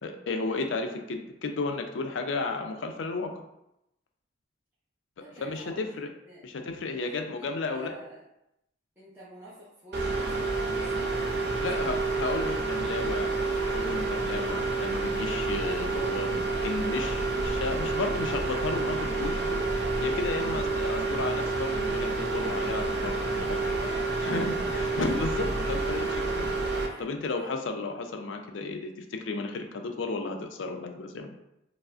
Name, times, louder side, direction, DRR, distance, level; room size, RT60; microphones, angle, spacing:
voice 1, 0.0-3.3 5.4-6.1 6.4-7.9 11.6-13.3 13.7-19.6 20.0-23.6 24.2-26.5 27.0-31.4, left 3 dB, 70° left, 4 dB, 0.4 m, -33 dB
voice 2, 5.2-6.4 6.8-8.2 9.0-12.1 23.3-25.2 26.8-27.0 27.3-27.5, equal, 10° right, -11 dB, 0.6 m, -49 dB
sound 1, 9.9-26.9, right 3 dB, 50° right, 0.5 m, -29 dB
4.7 x 2.0 x 2.5 m, 0.84 s
head